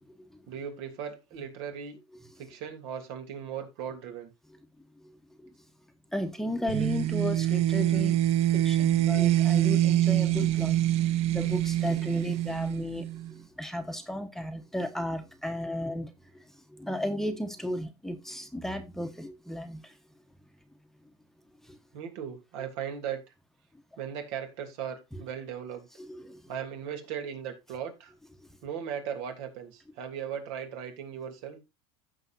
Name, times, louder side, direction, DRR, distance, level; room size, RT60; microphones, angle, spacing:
voice 1, 0.5-2.0 2.4-4.3 15.5-15.6 21.9-23.2 24.0-25.9 26.5-28.1 28.6-31.6, right 8 dB, 70° right, 2.9 m, -37 dB
voice 2, 6.1-8.2 8.5-10.8 11.3-13.1 13.6-16.1 16.8-19.8 26.1-26.4, left 1 dB, 5° left, 1.1 m, -34 dB
sound 1, 6.7-13.3, right 13 dB, 45° right, 0.6 m, -25 dB
15.5 x 5.6 x 2.6 m
supercardioid pair, 125°, 15 cm